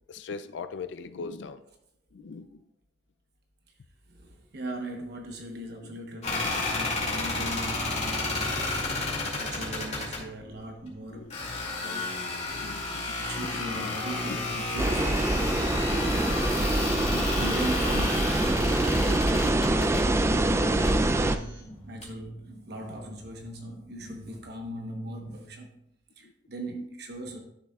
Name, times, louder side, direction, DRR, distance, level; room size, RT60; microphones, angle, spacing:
voice 1, 0.1-1.6 2.1-2.6 5.8-6.0 6.3-6.6 7.9-8.0 8.8-9.0 11.1-11.4 12.5-13.2 13.6-14.4 26.2-26.3, left 4 dB, 65° left, 0.4 m, -41 dB
voice 2, 4.1-11.4 11.8-12.2 13.2-15.7 16.1-21.6 21.9-25.8 26.2-27.4, right 1 dB, 60° right, 1.0 m, -40 dB
sound 1, 6.2-10.2 11.3-20.0 20.7-21.0 22.0-22.1, left 3 dB, 35° left, 2.3 m, -32 dB
sound 2, 14.8-21.4, right 1 dB, 15° right, 0.4 m, -25 dB
sound 3, 20.8-25.4, right 1 dB, 85° right, 2.4 m, -50 dB
11.5 x 6.7 x 2.4 m
head